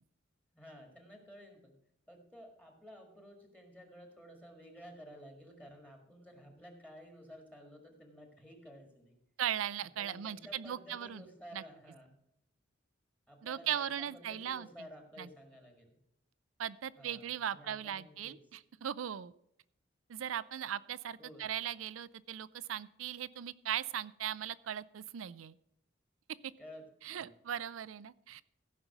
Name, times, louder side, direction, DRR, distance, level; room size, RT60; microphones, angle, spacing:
voice 1, 0.5-1.8 2.1-9.2 10.0-12.1 13.3-16.0 17.0-18.4 21.2-21.5 26.6-27.3, equal, 5° left, 2 dB, 1.8 m, -53 dB
voice 2, 9.4-11.2 11.5-11.6 13.4-14.7 15.2-15.3 16.6-19.3 20.1-25.6 26.4-26.5 27.0-28.4, right 10 dB, 85° right, 18 dB, 0.4 m, -38 dB
15.0 x 5.4 x 5.9 m, 0.77 s
head